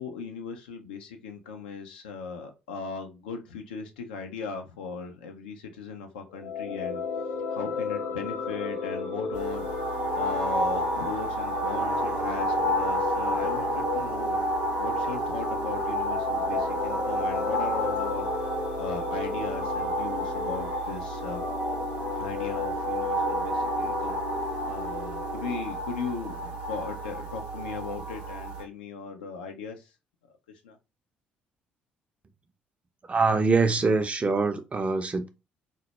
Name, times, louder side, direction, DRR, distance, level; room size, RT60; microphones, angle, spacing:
voice 1, 0.0-7.0 7.5-14.4 14.8-18.5 18.8-21.4 22.2-24.2 24.7-29.8 30.6-30.8, left 5 dB, 75° left, 0.3 m, -38 dB
sound 1, 6.3-25.6, left 5 dB, 50° left, 0.7 m, -34 dB
sound 2, 9.3-28.6, right 1 dB, 70° right, 0.6 m, -30 dB
voice 2, 33.1-35.3, right 4 dB, 25° right, 0.4 m, -24 dB
2.1 x 2.0 x 2.9 m
figure-of-eight pair, 50°, 5 cm